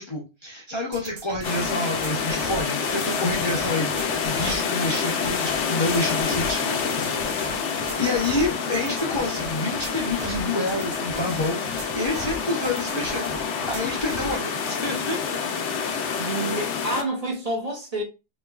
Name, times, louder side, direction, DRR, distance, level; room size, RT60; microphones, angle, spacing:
voice 1, 0.0-13.3 13.7-15.2, left 2 dB, 30° left, 0.6 m, -28 dB
sound 1, 0.9-14.4, right 5 dB, 60° right, 0.4 m, -39 dB
sound 2, 1.4-17.0, left 6 dB, 80° left, 0.9 m, -27 dB
voice 2, 16.2-18.0, right 1 dB, 35° right, 0.8 m, -28 dB
3.1 x 3.0 x 2.3 m
omnidirectional pair, 1.2 m